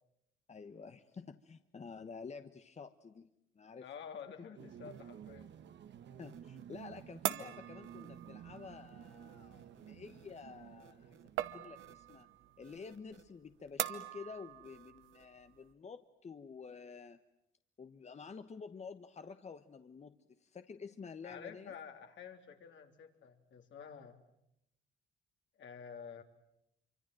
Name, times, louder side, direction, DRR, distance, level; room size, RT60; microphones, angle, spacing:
voice 1, 0.5-3.3 3.5-3.9 6.2-12.3 12.6-17.2 17.8-21.7, left 5 dB, 35° left, 9 dB, 1.1 m, -50 dB
voice 2, 3.8-5.6 21.2-24.2 25.6-26.2, left 7 dB, 70° left, 4 dB, 3.4 m, -50 dB
sound 1, 4.6-12.6, right 9 dB, 65° right, 1.3 m, -53 dB
sound 2, 4.9-15.7, right 13 dB, 90° right, 1.1 m, -45 dB
25.5 x 25.0 x 9.1 m, 0.81 s
cardioid pair, 90°, 20 cm